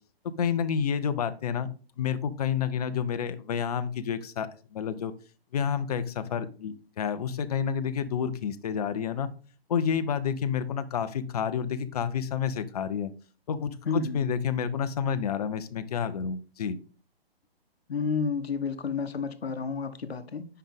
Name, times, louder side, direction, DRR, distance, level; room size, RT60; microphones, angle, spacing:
voice 1, 0.4-5.1 5.5-9.3 9.7-13.1 13.5-16.8, left 7 dB, 40° left, 0.6 m, -29 dB
voice 2, 13.9-14.2 17.9-20.5, left 5 dB, 80° left, 0.9 m, -30 dB
5.7 x 5.4 x 3.6 m
hypercardioid pair, 145°, 31 cm